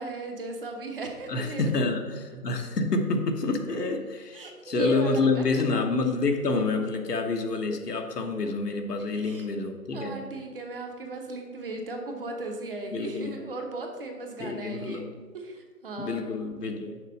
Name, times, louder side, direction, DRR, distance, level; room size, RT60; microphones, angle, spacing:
voice 1, 0.0-1.6 4.3-5.6 9.1-9.5 9.9-15.0 15.3-16.3, right 2 dB, 35° right, 2 dB, 1.0 m, -37 dB
voice 2, 1.3-10.2 12.9-13.4 14.4-15.1 16.0-17.0, left 3 dB, 80° left, 4 dB, 1.2 m, -28 dB
6.6 x 4.3 x 6.4 m, 1.5 s
hypercardioid pair, 155°, 47 cm